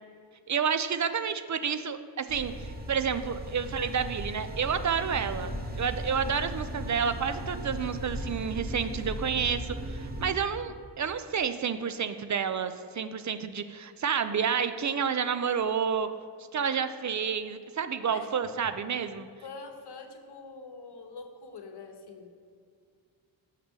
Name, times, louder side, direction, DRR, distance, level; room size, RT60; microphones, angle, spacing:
voice 1, 0.5-5.5 5.8-16.1 16.5-19.3, right 7 dB, 40° right, 11 dB, 0.4 m, -30 dB
sound 1, 2.3-10.3, equal, 20° right, 1.1 m, -37 dB
voice 2, 18.0-18.5 19.4-22.3, left 4 dB, 50° left, 5 dB, 1.0 m, -45 dB
6.5 x 5.7 x 3.6 m, 2.2 s
cardioid pair, 50°, 49 cm